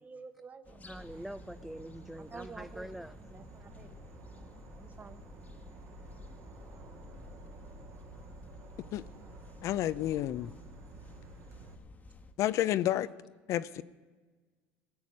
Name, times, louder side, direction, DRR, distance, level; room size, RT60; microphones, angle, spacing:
voice 1, 0.0-0.9 2.3-2.9 3.3-3.9 4.8-5.2 11.6-11.7, right 4 dB, 25° right, 10 dB, 1.1 m, -49 dB
sound 1, 0.6-12.3, left 3 dB, 25° left, 1.2 m, -53 dB
voice 2, 0.8-3.2 10.4-10.6, right 1 dB, 5° right, 12 dB, 0.3 m, -44 dB
Insect / Frog, 0.9-11.8, right 5 dB, 50° right, 1.7 m, -53 dB
voice 3, 9.6-10.5 12.4-13.1 13.5-13.8, left 13 dB, 55° left, 16 dB, 0.5 m, -30 dB
18.0 x 7.1 x 6.3 m, 1.4 s
supercardioid pair, 105°, 6 cm